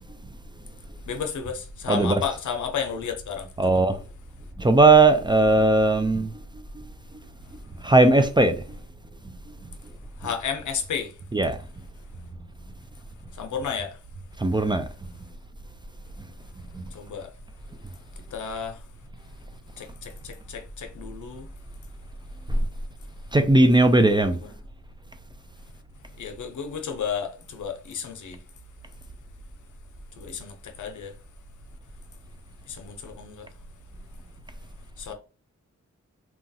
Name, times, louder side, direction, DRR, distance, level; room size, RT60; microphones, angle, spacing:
voice 1, 1.1-3.8 10.2-11.1 13.3-14.0 16.9-17.3 18.3-18.8 19.8-21.5 24.3-24.5 26.2-28.4 30.2-31.1 32.7-33.5 35.0-35.1, left 7 dB, 80° left, 0.6 m, -32 dB
voice 2, 1.9-2.2 3.6-4.0 4.6-6.3 6.8-6.9 7.8-8.6 10.2-10.3 11.3-11.6 14.4-14.9 16.7-16.8 22.5-22.6 23.3-24.4, right 2 dB, 15° right, 0.4 m, -18 dB
2.9 x 2.3 x 2.6 m
cardioid pair, 60°, 29 cm